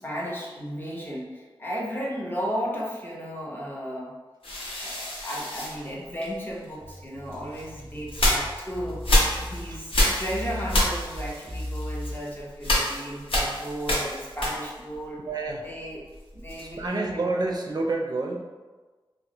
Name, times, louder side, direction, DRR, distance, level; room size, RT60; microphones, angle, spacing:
voice 1, 0.0-4.2 4.8-15.2 15.6-16.1 16.3-17.4, equal, 20° left, -4 dB, 0.8 m, -34 dB
sound 1, 4.4-6.6 7.3-15.0 15.2-16.9, left 1 dB, 75° left, 0.9 m, -28 dB
sound 2, 6.8-12.1, left 1 dB, 5° left, 1.3 m, -37 dB
voice 2, 15.3-15.7 16.8-18.5, right 2 dB, 45° right, 0 dB, 0.5 m, -28 dB
4.5 x 2.1 x 2.9 m, 1.3 s
wide cardioid pair, 70°, 9 cm